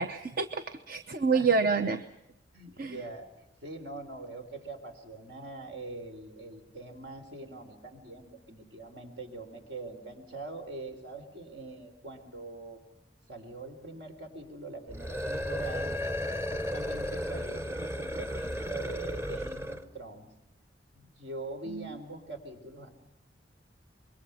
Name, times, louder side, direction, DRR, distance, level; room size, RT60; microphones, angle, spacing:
voice 1, 0.0-2.0 2.8-3.0 21.7-21.9, right 4 dB, 55° right, 9 dB, 0.9 m, -28 dB
voice 2, 1.3-1.9 2.5-3.3 3.6-12.8 13.3-15.9 16.4-20.3 20.9-22.9, right 2 dB, 70° right, 6 dB, 3.8 m, -43 dB
sound 1, 14.9-19.9, equal, 15° right, 0.9 m, -34 dB
25.5 x 22.5 x 5.7 m, 0.90 s
head